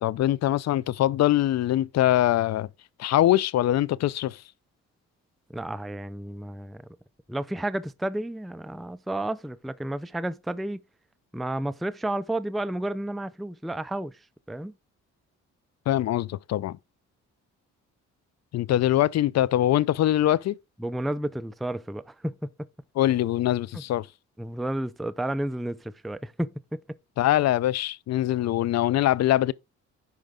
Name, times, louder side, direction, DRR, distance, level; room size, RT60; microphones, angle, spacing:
voice 1, 0.0-2.7 3.0-4.4 15.9-16.8 18.5-20.6 23.0-24.1 27.2-29.5, left 13 dB, 60° left, 0.5 m, -23 dB
voice 2, 5.5-6.9 7.3-10.8 11.3-14.2 14.5-14.7 20.8-22.5 23.7-23.8 24.4-26.8, right 1 dB, ahead, 0.4 m, -31 dB
10.5 x 4.5 x 3.7 m
cardioid pair, 90°, 30 cm